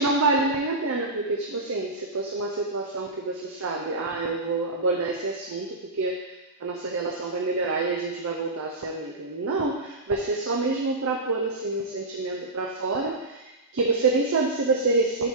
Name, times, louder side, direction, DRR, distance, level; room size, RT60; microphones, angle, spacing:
voice 1, 0.0-6.3 6.6-15.3, right 3 dB, 70° right, -1 dB, 0.6 m, -27 dB
6.8 x 3.7 x 4.5 m, 1.0 s
head